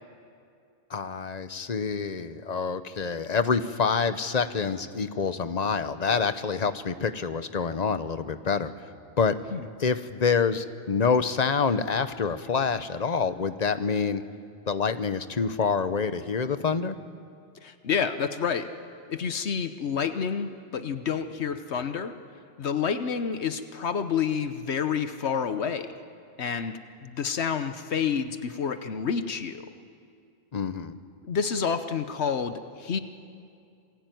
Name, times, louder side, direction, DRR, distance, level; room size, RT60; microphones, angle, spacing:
voice 1, 0.9-8.7 9.2-9.4 9.8-14.2 14.7-17.0 30.5-30.9, left 5 dB, 40° left, 11 dB, 1.0 m, -27 dB
voice 2, 17.6-18.7 19.1-22.1 22.6-25.9 26.4-29.7 31.2-33.0, left 6 dB, 80° left, 10 dB, 1.2 m, -29 dB
27.5 x 20.0 x 9.3 m, 2.4 s
omnidirectional pair, 1.1 m